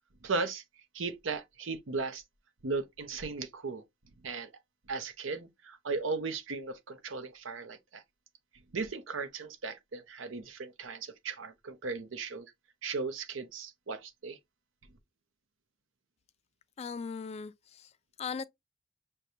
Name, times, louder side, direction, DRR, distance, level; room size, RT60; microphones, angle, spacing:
voice 1, 0.2-0.6 0.9-2.2 2.6-3.8 4.2-4.5 4.9-8.0 8.7-12.5 12.8-14.4, right 4 dB, 70° right, 0.7 m, -36 dB
voice 2, 16.8-17.9 18.2-18.4, left 5 dB, 30° left, 0.3 m, -38 dB
6.3 x 2.2 x 2.7 m
head